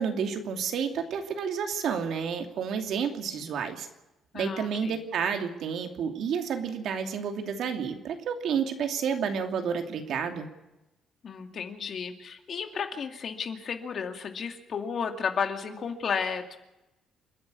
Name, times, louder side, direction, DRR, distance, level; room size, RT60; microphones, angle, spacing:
voice 1, 0.0-3.9 4.3-10.5, right 6 dB, 65° right, 5 dB, 2.8 m, -30 dB
voice 2, 4.3-5.0 11.2-16.6, left 6 dB, 45° left, 5 dB, 2.3 m, -33 dB
28.5 x 11.0 x 8.5 m, 0.98 s
cardioid pair, 135°, 0 cm